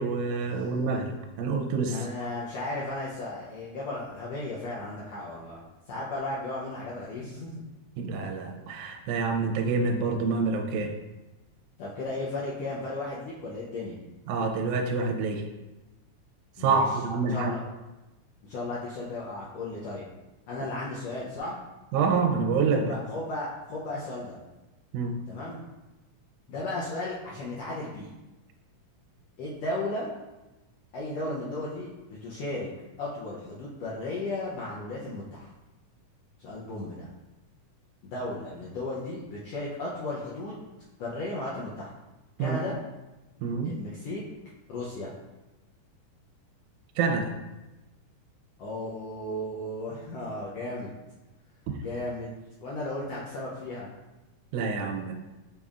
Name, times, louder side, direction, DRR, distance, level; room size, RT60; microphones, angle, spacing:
voice 1, 0.0-2.0 8.0-10.9 14.3-15.4 16.6-17.5 21.9-22.9 24.9-25.2 42.4-42.6 43.4-43.8 47.0-47.3 51.7-51.8 54.5-55.1, right 4 dB, 80° right, 3 dB, 1.9 m, -27 dB
voice 2, 1.9-5.6 5.9-7.6 11.8-14.0 16.6-16.8 17.3-17.6 18.4-20.1 20.5-21.6 22.7-24.4 25.3-25.6 26.5-28.1 29.4-30.1 30.9-31.9 32.2-32.7 33.0-35.5 36.4-37.1 38.0-40.7 41.0-41.9 42.4-42.8 43.6-44.2 44.7-45.1 48.6-50.9 51.7-52.3 52.6-53.9, left 2 dB, 90° left, -6 dB, 1.4 m, -35 dB
5.2 x 4.1 x 2.4 m, 1.1 s
omnidirectional pair, 3.8 m